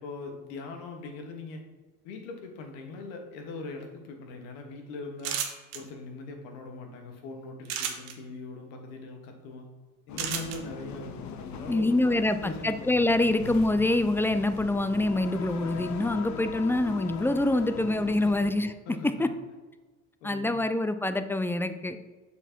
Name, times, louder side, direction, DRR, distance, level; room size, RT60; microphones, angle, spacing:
voice 1, 0.0-1.6 2.0-5.4 5.7-9.7 10.1-13.6 18.2-18.3 18.9-19.3 20.2-20.6, left 3 dB, 75° left, 3 dB, 1.3 m, -41 dB
sound 1, 5.2-5.8 7.6-8.1 10.2-10.6, right 8 dB, 70° right, 1.1 m, -31 dB
sound 2, 10.1-18.5, left 7 dB, 50° left, 0.7 m, -41 dB
voice 2, 11.7-18.7 19.0-19.3 20.2-22.0, left 2 dB, 5° left, 10 dB, 0.4 m, -25 dB
6.6 x 4.2 x 4.5 m, 1.3 s
hypercardioid pair, 70°, 38 cm